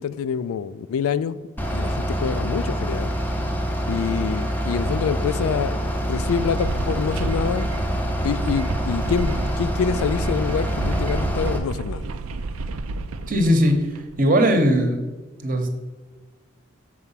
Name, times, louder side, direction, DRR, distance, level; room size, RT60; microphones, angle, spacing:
voice 1, 0.0-1.4 1.7-3.1 3.9-7.7 8.2-12.0, left 6 dB, 90° left, 15 dB, 0.3 m, -26 dB
Bus / Idling, 1.6-11.6, equal, 10° left, 0.6 m, -26 dB
sound 1, 5.9-14.2, right 3 dB, 85° right, 0.4 m, -32 dB
voice 2, 13.3-15.0 15.4-15.7, equal, 40° right, 5 dB, 0.9 m, -19 dB
6.8 x 4.7 x 5.6 m, 1.2 s
head